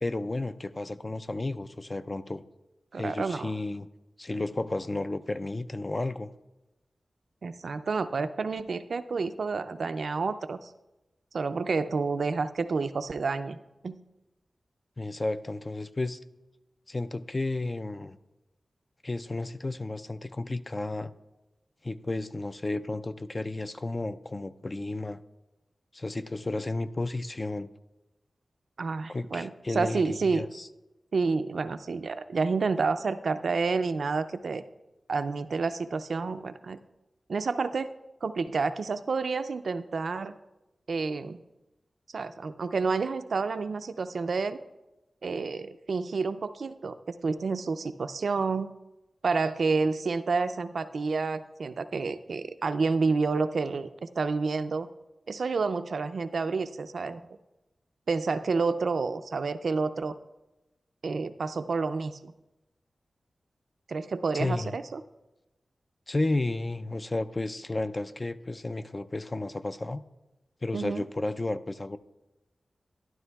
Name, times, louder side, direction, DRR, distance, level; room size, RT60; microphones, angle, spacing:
voice 1, 0.0-2.4 3.0-3.9 4.2-6.3 15.0-16.2 16.9-18.2 19.0-21.1 21.8-25.2 25.9-27.7 29.1-30.7 64.3-64.8 66.1-70.0 70.6-72.0, left 2 dB, 30° left, 11 dB, 0.4 m, -32 dB
voice 2, 2.9-3.5 7.4-10.7 11.3-13.6 13.8-14.0 28.8-30.5 31.1-34.6 35.1-36.8 37.3-37.9 38.2-40.3 40.9-41.4 42.1-44.6 45.2-48.7 49.2-54.9 55.3-57.2 58.1-60.1 61.0-62.3 63.9-65.0 70.7-71.0, right 4 dB, 75° right, 11 dB, 0.4 m, -29 dB
12.5 x 11.5 x 2.3 m, 1.0 s
wide cardioid pair, 75°, 0 cm